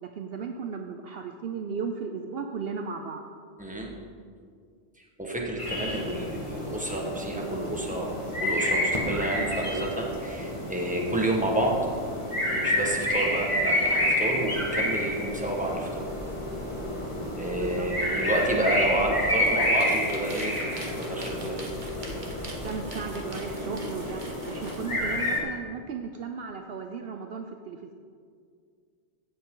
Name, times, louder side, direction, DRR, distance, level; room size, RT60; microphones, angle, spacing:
voice 1, 0.0-3.3 17.6-18.2 22.6-27.9, right 5 dB, 65° right, 5 dB, 0.8 m, -36 dB
voice 2, 3.6-3.9 5.0-11.8 12.5-16.0 17.3-21.6, right 1 dB, 5° right, -1 dB, 1.4 m, -30 dB
sound 1, 5.6-25.4, left 1 dB, 25° left, 1.9 m, -29 dB
sound 2, 19.3-24.9, right 2 dB, 45° right, 1.5 m, -45 dB
15.0 x 7.8 x 3.8 m, 2.1 s
omnidirectional pair, 1.2 m